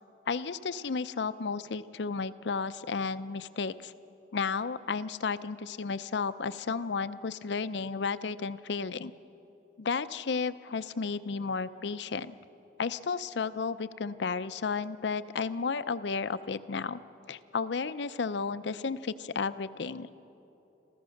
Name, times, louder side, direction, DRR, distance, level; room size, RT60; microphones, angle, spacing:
voice 1, 0.3-3.9 4.3-9.1 9.8-12.4 12.8-17.0 17.3-20.1, left 5 dB, 75° left, 14 dB, 0.5 m, -33 dB
26.5 x 15.0 x 6.4 m, 2.9 s
head